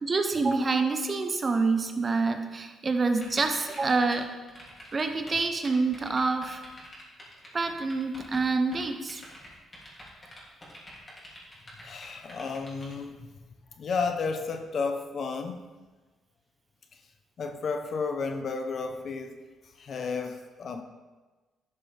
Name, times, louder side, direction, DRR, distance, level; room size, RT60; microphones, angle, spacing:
voice 1, 0.0-4.3 4.9-6.6 7.5-9.2, right 3 dB, 35° right, 6 dB, 0.9 m, -27 dB
sound 1, 3.2-4.2 4.5-5.4 5.6-8.5 8.7-12.9, equal, 25° left, 3.1 m, -47 dB
voice 2, 11.8-13.3 13.8-15.6 17.4-19.3 19.8-20.8, left 4 dB, 55° left, 6 dB, 1.0 m, -32 dB
11.5 x 6.8 x 3.6 m, 1.2 s
cardioid pair, 90°, 0 cm